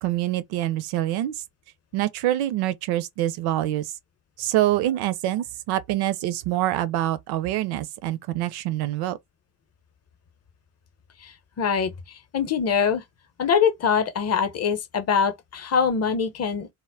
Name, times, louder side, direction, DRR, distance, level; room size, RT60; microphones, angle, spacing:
voice 1, 0.0-1.4 1.9-3.9 4.4-9.2, right 14 dB, 60° right, 0.5 m, -25 dB
voice 2, 11.2-13.0 13.4-16.7, left 6 dB, 35° left, 0.7 m, -24 dB
2.1 x 2.1 x 3.4 m
hypercardioid pair, 60°, 45 cm